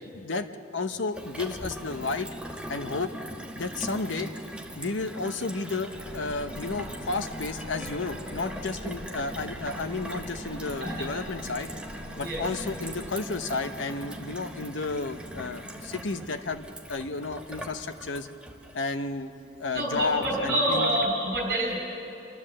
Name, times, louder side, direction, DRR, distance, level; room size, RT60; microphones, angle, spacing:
voice 1, 0.1-0.5 0.7-2.3 2.7-3.1 3.5-4.3 4.8-11.7 12.2-18.3 18.7-19.3 19.6-20.9, left 3 dB, 90° left, 8 dB, 0.9 m, -32 dB
Gurgling / Water tap faucet / Sink (filling or washing), 1.1-21.1, right 1 dB, 5° right, 1.0 m, -41 dB
sound 1, 5.9-13.1, equal, 10° left, 4.6 m, -43 dB
voice 2, 12.2-12.5 19.7-21.8, right 1 dB, 50° right, -1 dB, 4.4 m, -27 dB
27.5 x 13.0 x 7.6 m, 2.9 s
head